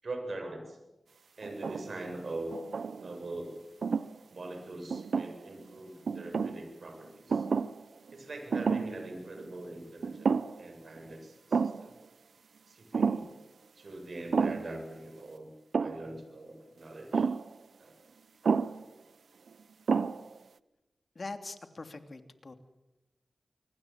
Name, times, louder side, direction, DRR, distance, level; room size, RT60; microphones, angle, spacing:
voice 1, 0.0-0.8 1.4-2.5 2.9-3.5 4.3-7.5 8.1-11.9 12.7-13.3 13.8-15.5 15.8-17.3 17.8-17.9, right 2 dB, 60° right, 5 dB, 7.8 m, -42 dB
sound 1, 1.4-2.0 2.5-3.2 3.8-4.1 4.9-5.6 6.1-6.6 7.3-8.1 8.5-9.0 9.4-9.5 10.0-10.7 11.0-11.1 11.5-11.9 12.9-13.3 14.3-14.8 15.7-16.1 17.1-17.5 18.4-18.8 19.5-19.6 19.9-20.4, right 5 dB, 80° right, 0.9 m, -30 dB
voice 2, 21.1-22.5, left 3 dB, 50° left, 8 dB, 2.9 m, -42 dB
25.0 x 24.5 x 7.6 m, 1.0 s
cardioid pair, 60°, 0 cm